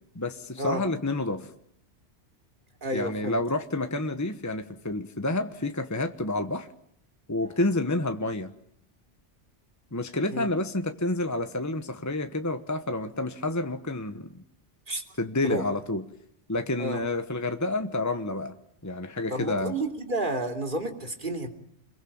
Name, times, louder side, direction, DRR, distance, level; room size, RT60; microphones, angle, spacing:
voice 1, 0.1-1.5 2.9-6.7 7.3-8.5 9.9-14.3 15.2-16.0 16.5-18.5 18.8-19.7, left 2 dB, 15° left, 8 dB, 1.1 m, -29 dB
voice 2, 2.8-3.4 7.5-7.6 10.3-10.5 14.9-15.0 15.4-15.6 16.8-17.0 19.3-21.5, right 1 dB, 45° right, 5 dB, 3.3 m, -31 dB
27.0 x 22.5 x 8.7 m, 0.70 s
omnidirectional pair, 1.2 m